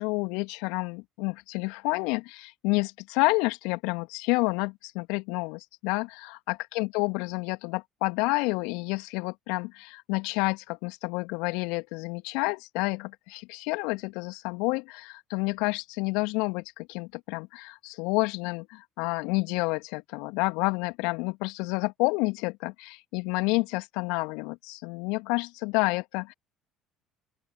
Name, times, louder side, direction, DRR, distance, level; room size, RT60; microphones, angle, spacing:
voice 1, 0.0-26.3, left 27 dB, 70° left, 2.9 m, -29 dB
open air
figure-of-eight pair, 55°, 0 cm